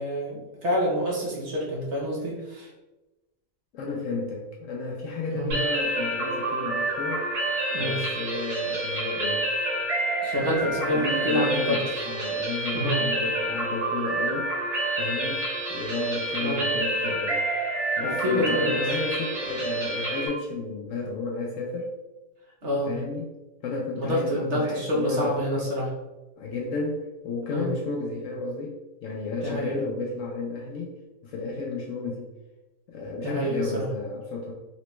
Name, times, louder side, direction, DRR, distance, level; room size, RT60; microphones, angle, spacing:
voice 1, 0.0-2.7 5.3-5.6 7.7-8.0 10.2-12.0 12.7-13.0 16.4-16.7 18.0-18.7 22.6-22.9 24.0-25.9 27.5-27.7 29.4-29.7 33.2-33.9, equal, 55° right, -3 dB, 0.9 m, -27 dB
voice 2, 3.7-7.2 7.8-9.4 10.3-14.5 15.0-15.4 15.7-17.4 18.0-21.9 22.9-23.3 23.6-25.8 26.4-30.9 31.2-32.3 32.9-34.5, left 3 dB, 70° left, -1 dB, 0.8 m, -32 dB
sound 1, 5.5-20.3, right 1 dB, 80° right, 1.4 m, -28 dB
4.1 x 2.2 x 2.9 m, 1.1 s
omnidirectional pair, 1.6 m